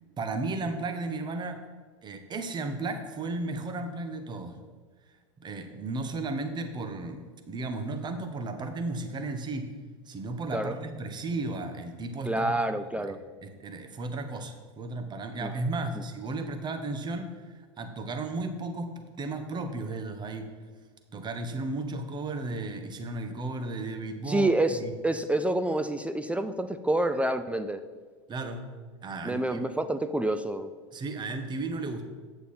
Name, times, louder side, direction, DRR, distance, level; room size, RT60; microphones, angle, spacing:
voice 1, 0.2-1.7 2.0-4.6 5.4-9.7 10.1-12.7 13.4-17.4 17.8-20.5 21.1-24.5 24.8-24.9 28.3-28.7 29.0-29.6 30.9-32.0, right 2 dB, 30° right, 7 dB, 1.1 m, -34 dB
voice 2, 12.2-13.2 15.4-15.5 15.9-16.0 24.3-27.8 29.2-30.7, right 1 dB, 10° right, 10 dB, 0.4 m, -28 dB
8.5 x 6.9 x 4.3 m, 1.4 s
hypercardioid pair, 95°, 16 cm